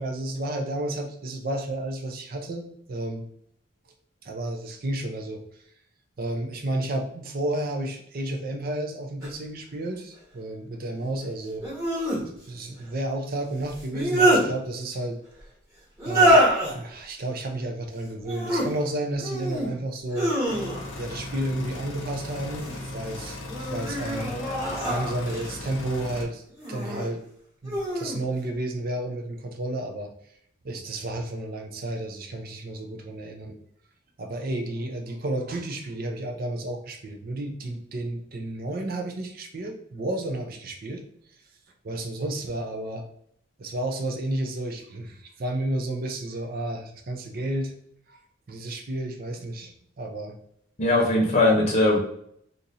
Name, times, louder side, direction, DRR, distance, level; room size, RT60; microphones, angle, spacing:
voice 1, 0.0-3.3 4.2-5.4 6.2-11.7 12.3-15.2 16.0-20.3 21.0-24.4 24.9-26.4 26.7-27.2 27.6-30.1 30.6-33.6 34.2-41.0 41.8-43.0 43.6-47.7 48.1-48.2 48.5-50.3, right 1 dB, 45° right, 3 dB, 0.5 m, -32 dB
sound 1, 9.2-9.3 11.6-12.2 13.7-14.4 16.0-16.7 18.2-18.7 19.2-19.7 20.1-21.0 22.2-22.9 23.5-25.5 26.6-27.1 27.6-28.2, right 1 dB, 15° right, 1.3 m, -24 dB
sound 2, 20.5-26.2, left 2 dB, 70° left, 0.8 m, -37 dB
voice 2, 50.8-52.0, left 2 dB, 35° left, -2 dB, 0.8 m, -20 dB
2.8 x 2.5 x 3.9 m, 0.68 s
head